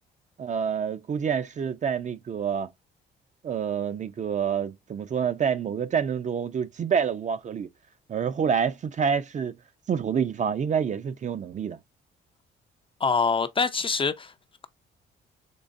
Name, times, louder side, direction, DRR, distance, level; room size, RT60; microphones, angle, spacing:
voice 1, 0.4-2.7 3.4-7.7 8.1-9.5 9.9-11.8, right 7 dB, 40° right, 0.4 m, -27 dB
voice 2, 13.0-14.3, left 5 dB, 25° left, 0.4 m, -24 dB
3.8 x 3.1 x 2.5 m
cardioid pair, 90°, 20 cm